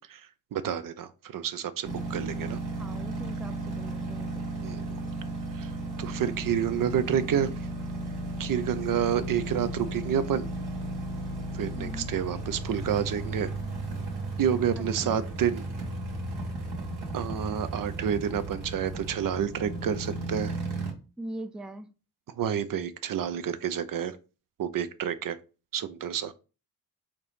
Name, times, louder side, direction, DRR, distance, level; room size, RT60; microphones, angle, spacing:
voice 1, 0.1-2.6 4.6-5.0 5.5-5.7 6.0-7.7 8.4-10.5 11.5-13.5 14.4-15.6 17.1-20.6 22.3-24.2 24.6-25.4 25.7-26.3, right 8 dB, 55° right, 0.5 m, -29 dB
sound 1, 1.8-20.9, right 2 dB, 75° right, 1.6 m, -35 dB
voice 2, 2.7-4.4 11.7-12.1 14.8-15.3 21.2-21.9, right 1 dB, ahead, 0.4 m, -41 dB
4.4 x 2.7 x 3.4 m
supercardioid pair, 50°, 40 cm